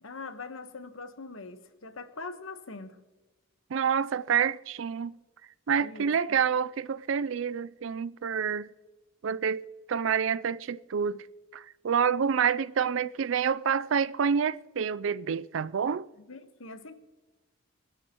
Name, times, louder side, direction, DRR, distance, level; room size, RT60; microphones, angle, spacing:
voice 1, 0.0-3.0 5.8-6.1 16.3-16.9, left 3 dB, 85° left, 1.2 m, -42 dB
voice 2, 3.7-5.1 5.7-8.7 9.2-11.3 11.5-16.1, right 7 dB, 70° right, 0.4 m, -28 dB
28.0 x 11.0 x 3.0 m
head